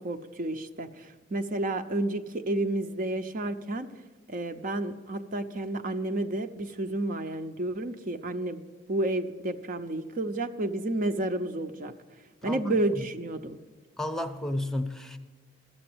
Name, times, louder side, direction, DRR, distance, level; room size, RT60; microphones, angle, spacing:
voice 1, 0.0-3.9 4.3-8.6 8.9-11.9 12.4-13.6, right 2 dB, 45° right, 0.7 m, -31 dB
voice 2, 14.0-15.2, left 1 dB, 5° left, 0.7 m, -32 dB
13.0 x 7.9 x 7.8 m
head